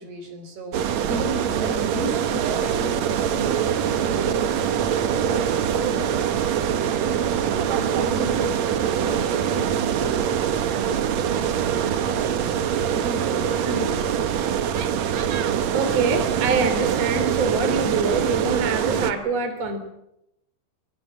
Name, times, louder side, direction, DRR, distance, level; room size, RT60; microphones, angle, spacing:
voice 1, 0.0-7.3 7.8-10.3 10.7-12.6 12.9-14.3, right 3 dB, 60° right, 6 dB, 6.5 m, -33 dB
sound 1, 0.7-19.1, right 8 dB, 90° right, 1.5 m, -24 dB
voice 2, 15.7-19.8, right 4 dB, 40° right, 7 dB, 4.0 m, -24 dB
25.5 x 24.0 x 7.4 m, 0.82 s
omnidirectional pair, 5.2 m